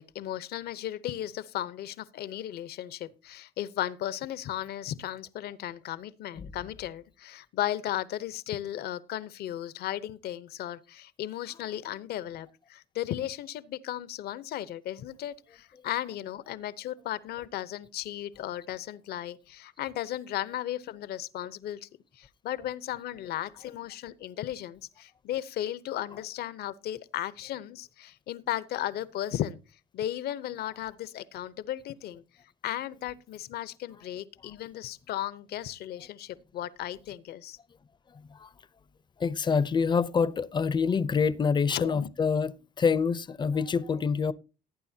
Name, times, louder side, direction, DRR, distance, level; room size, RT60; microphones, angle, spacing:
voice 1, 0.0-21.9 22.1-29.6 29.9-32.2 32.6-37.6 41.7-42.1, left 12 dB, 70° left, 0.8 m, -35 dB
voice 2, 6.4-6.7 11.5-11.8 38.3-38.5 39.2-44.3, left 5 dB, 25° left, 0.6 m, -27 dB
18.0 x 9.2 x 2.7 m
cardioid pair, 110°, 17 cm